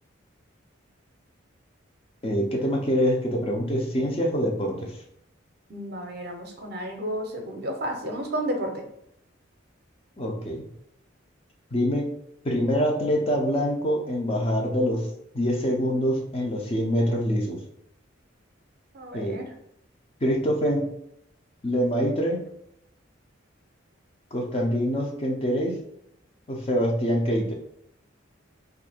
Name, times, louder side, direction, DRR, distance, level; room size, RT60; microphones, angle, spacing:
voice 1, 2.2-5.0 10.2-10.6 11.7-12.1 12.4-15.1 15.3-17.6 19.1-19.4 20.2-20.9 21.6-22.4 24.3-25.8 26.5-27.5, equal, 30° left, 0 dB, 0.6 m, -25 dB
voice 2, 5.7-8.8 18.9-19.4, right 1 dB, 50° right, 3 dB, 0.6 m, -32 dB
2.7 x 2.5 x 4.3 m, 0.77 s
head